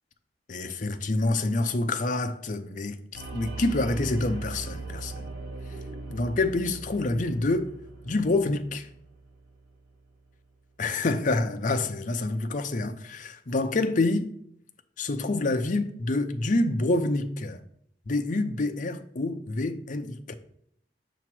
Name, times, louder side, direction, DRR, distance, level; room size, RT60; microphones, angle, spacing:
voice 1, 0.5-5.3 6.1-7.7 8.0-8.9 10.8-14.3 15.0-17.6 18.1-20.3, left 2 dB, 45° left, 0.6 m, -27 dB
sound 1, 3.1-9.9, right 3 dB, 90° right, 1.3 m, -39 dB
6.9 x 3.1 x 6.0 m
head